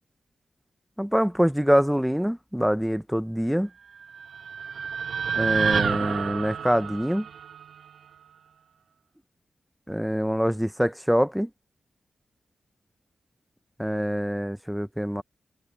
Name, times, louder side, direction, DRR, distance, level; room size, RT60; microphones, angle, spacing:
voice 1, 1.0-3.7 5.4-7.3 9.9-11.5 13.8-15.2, equal, ahead, 0.6 m, -25 dB
sound 1, 4.0-8.2, right 6 dB, 80° right, 1.1 m, -29 dB
wide cardioid pair, 175°, 0 cm